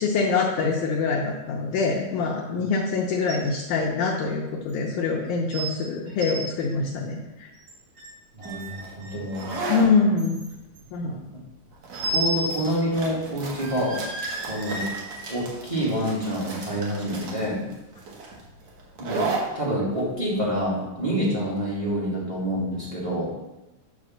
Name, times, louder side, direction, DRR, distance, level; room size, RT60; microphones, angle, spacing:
voice 1, 0.0-7.5 9.7-10.4 10.9-11.2, left 4 dB, 70° left, -2 dB, 2.0 m, -24 dB
sound 1, 3.3-3.6 3.9-4.0 4.7-4.8 5.5-5.8 6.1-6.5 7.6-8.1 8.4-9.7 10.2-10.8 11.9-12.7 13.0-13.1 13.6-15.4 16.0-16.1, right 1 dB, 75° right, 3.0 m, -33 dB
voice 2, 8.3-9.5 12.0-14.0 14.5-14.9 15.3-17.7 19.0-23.3, equal, 15° right, -6 dB, 1.1 m, -27 dB
sound 2, 8.4-21.9, right 3 dB, 55° right, 2.3 m, -36 dB
9.8 x 3.4 x 6.3 m, 0.99 s
omnidirectional pair, 4.2 m